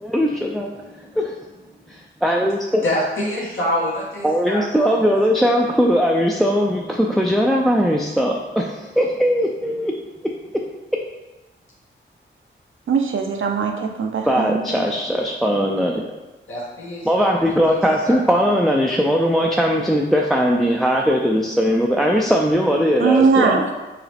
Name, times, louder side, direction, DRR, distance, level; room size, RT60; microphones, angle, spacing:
voice 1, 0.0-1.3 1.9-2.8 4.2-9.9 10.5-10.6 14.3-16.0 17.0-23.6, equal, ahead, -1 dB, 0.3 m, -19 dB
voice 2, 2.8-5.0 5.6-5.7 16.5-17.4 17.7-18.5 19.2-19.3, left 1 dB, 80° left, -6 dB, 1.3 m, -26 dB
voice 3, 12.9-14.9 23.0-23.7, right 5 dB, 75° right, 3 dB, 0.6 m, -20 dB
4.7 x 3.1 x 3.3 m, 1.1 s
wide cardioid pair, 100°, 20 cm